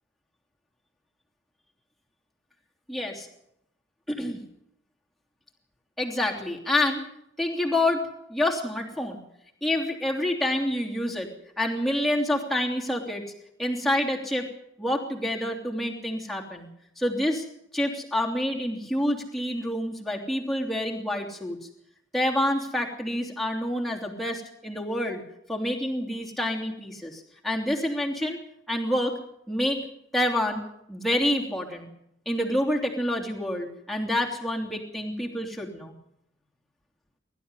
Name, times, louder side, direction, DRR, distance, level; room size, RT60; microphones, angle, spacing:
voice 1, 2.9-3.3 4.1-4.4 6.0-7.0 7.4-9.2 9.6-11.3 11.6-13.2 13.6-14.5 14.8-16.7 17.0-17.4 17.7-21.6 22.1-25.2 25.5-28.4 28.7-29.1 29.5-29.8 30.1-30.6 30.9-31.9 32.2-35.9, left 1 dB, ahead, -1 dB, 3.1 m, -27 dB
23.0 x 13.0 x 9.8 m, 0.79 s
head